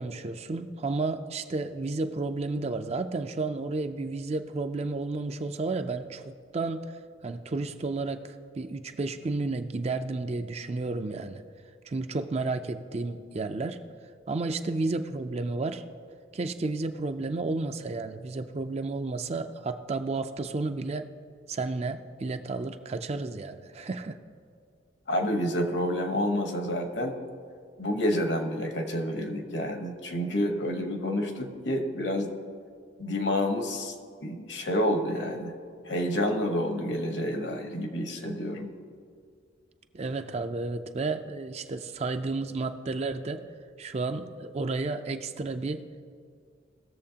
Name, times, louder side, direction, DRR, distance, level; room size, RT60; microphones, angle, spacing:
voice 1, 0.0-6.9 7.2-11.4 11.9-13.8 14.3-15.8 16.3-21.1 21.5-24.2 39.9-43.4 43.8-45.8, right 3 dB, 35° right, 8 dB, 0.4 m, -32 dB
voice 2, 25.1-27.2 27.8-32.3 33.0-33.9 34.2-35.5 35.8-38.7, left 1 dB, 65° left, 5 dB, 1.1 m, -29 dB
18.5 x 7.0 x 2.8 m, 2.2 s
head